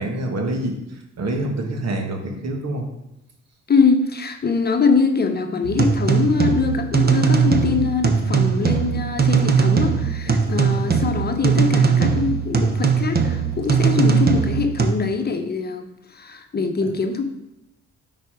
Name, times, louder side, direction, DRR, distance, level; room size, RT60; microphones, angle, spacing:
voice 1, 0.0-2.9 10.2-10.4 16.8-16.9, right 1 dB, 60° right, 3 dB, 1.6 m, -27 dB
voice 2, 3.7-17.2, left 4 dB, 30° left, 5 dB, 0.9 m, -23 dB
sound 1, 5.6-14.9, right 6 dB, 30° right, 0.9 m, -20 dB
9.4 x 4.2 x 4.9 m, 0.91 s
cardioid pair, 90°, 30 cm